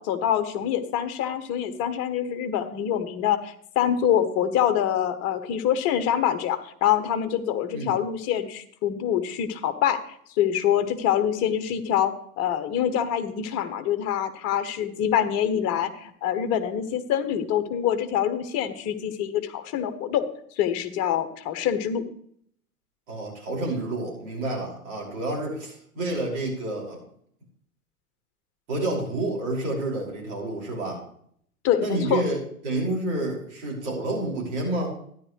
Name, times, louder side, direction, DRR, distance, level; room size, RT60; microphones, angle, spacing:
voice 1, 0.0-20.2 20.6-22.0 31.6-32.2, left 9 dB, 35° left, 9 dB, 1.2 m, -25 dB
voice 2, 23.1-27.0 28.7-31.0 31.8-32.4 32.6-35.0, right 2 dB, 50° right, -3 dB, 5.7 m, -29 dB
13.0 x 10.5 x 3.2 m, 0.65 s
figure-of-eight pair, 90°, 45 cm